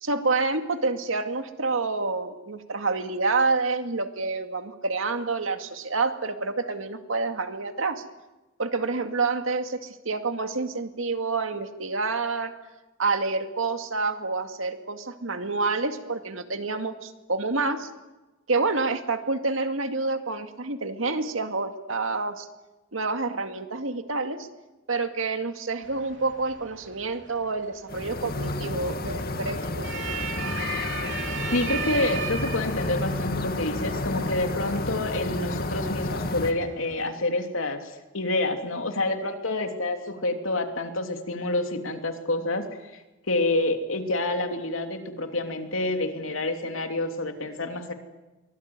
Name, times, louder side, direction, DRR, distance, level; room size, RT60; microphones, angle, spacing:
voice 1, 0.0-8.0 8.6-12.5 13.0-17.9 18.5-22.5 22.9-24.5 24.9-29.9, right 3 dB, 90° right, 7 dB, 2.2 m, -28 dB
sound 1, 25.8-37.1, right 5 dB, 65° right, 3.8 m, -38 dB
atmosphere-evening-birds, 27.9-36.5, left 2 dB, 50° left, 2.0 m, -31 dB
voice 2, 31.5-43.0 43.3-47.9, left 2 dB, 90° left, 5 dB, 3.1 m, -28 dB
24.0 x 19.5 x 9.6 m, 1.1 s
head